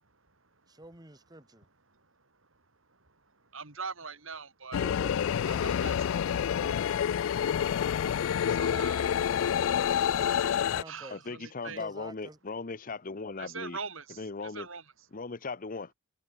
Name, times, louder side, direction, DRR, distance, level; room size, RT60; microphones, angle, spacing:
voice 1, 0.7-1.7 4.7-6.9 10.0-11.3 11.7-12.4, right 2 dB, 20° right, 2.4 m, -49 dB
voice 2, 3.3-4.8 5.4-6.0 8.5-9.2 10.9-11.8 13.4-14.8, right 5 dB, 70° right, 3.9 m, -42 dB
sound 1, 4.7-10.8, left 8 dB, 70° left, 0.3 m, -28 dB
voice 3, 11.1-13.8 14.2-14.7 15.1-15.9, left 4 dB, 40° left, 0.8 m, -38 dB
head